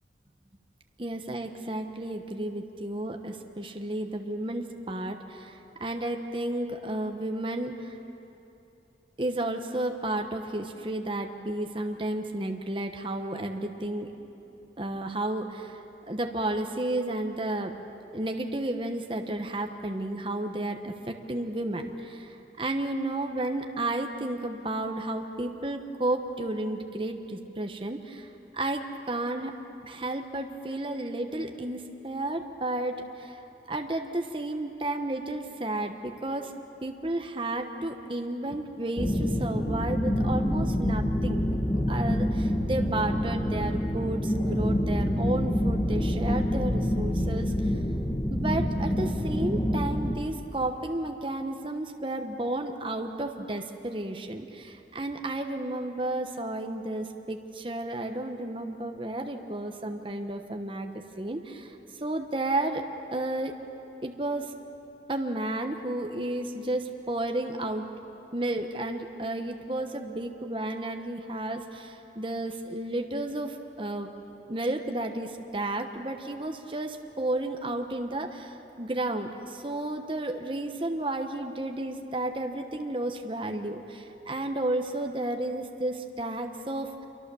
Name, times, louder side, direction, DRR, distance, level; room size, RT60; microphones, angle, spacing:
voice 1, 1.0-8.0 9.2-14.1 14.8-17.8 18.1-28.3 28.5-29.5 29.8-33.4 33.7-36.5 36.8-41.6 41.9-47.7 48.3-62.8 63.1-63.5 64.0-64.5 65.1-67.9 68.3-74.1 74.5-87.1, right 1 dB, 30° right, 4 dB, 1.1 m, -32 dB
sound 1, 39.0-50.1, equal, 20° left, 1.3 m, -27 dB
27.0 x 24.0 x 7.0 m, 2.9 s
head